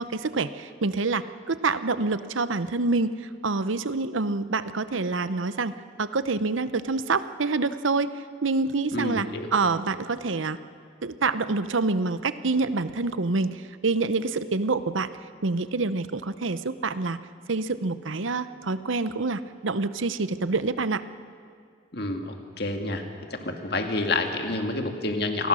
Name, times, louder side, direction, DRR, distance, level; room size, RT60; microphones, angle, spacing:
voice 1, 0.0-5.7 6.0-8.1 8.4-10.6 11.0-15.1 15.4-17.2 17.5-21.0, right 3 dB, 80° right, 13 dB, 0.8 m, -27 dB
voice 2, 8.9-9.5 21.9-23.0 23.3-25.5, left 2 dB, 55° left, 4 dB, 2.1 m, -28 dB
28.0 x 20.0 x 6.4 m, 2.2 s
head